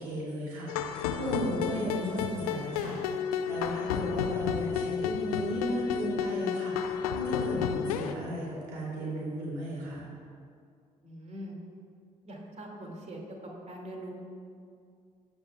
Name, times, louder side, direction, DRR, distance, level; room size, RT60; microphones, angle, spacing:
voice 1, 0.0-3.0 3.4-10.0, equal, 75° right, -5 dB, 2.6 m, -35 dB
sound 1, 0.7-8.1, left 8 dB, 80° left, 0.4 m, -32 dB
voice 2, 11.0-11.6 12.2-13.4 13.7-14.1, right 1 dB, 35° right, 0 dB, 2.1 m, -42 dB
16.5 x 8.1 x 2.3 m, 2.3 s
figure-of-eight pair, 40°, 19 cm